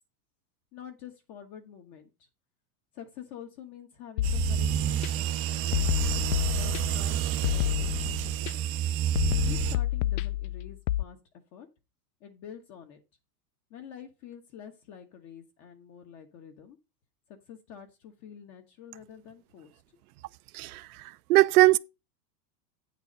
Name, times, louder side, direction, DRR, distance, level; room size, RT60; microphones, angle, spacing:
voice 1, 0.7-2.3 2.9-5.9 6.5-8.7 9.4-11.2 11.5-11.7 12.2-13.0 13.7-16.8 17.3-19.8, left 8 dB, 35° left, 1.3 m, -47 dB
sound 1, 4.2-5.1 5.7-7.1 7.4-8.5 9.2-11.0, left 14 dB, 65° left, 0.5 m, -29 dB
sound 2, 4.2-9.8, right 11 dB, 25° right, 0.6 m, -29 dB
voice 2, 20.5-21.8, right 19 dB, 65° right, 0.7 m, -21 dB
9.0 x 4.7 x 5.4 m
supercardioid pair, 150°, 49 cm